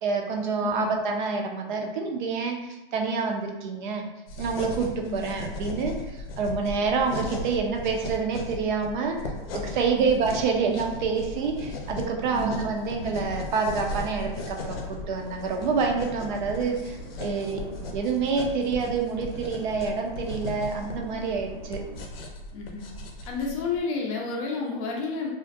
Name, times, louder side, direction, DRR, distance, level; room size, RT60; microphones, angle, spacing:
voice 1, 0.0-4.1 4.4-17.6 17.9-21.8, right 5 dB, 55° right, 2 dB, 0.5 m, -27 dB
voice 2, 0.6-0.9 5.1-5.3 9.9-10.1 12.3-12.6 17.4-17.8 22.5-22.9 23.3-25.3, left 4 dB, 35° left, -1 dB, 0.4 m, -31 dB
sound 1, 4.3-23.8, left 2 dB, 80° left, 0.6 m, -37 dB
Crowd, 6.9-22.0, right 1 dB, 75° right, 1.0 m, -46 dB
2.5 x 2.0 x 2.5 m, 1.0 s
hypercardioid pair, 145°, 29 cm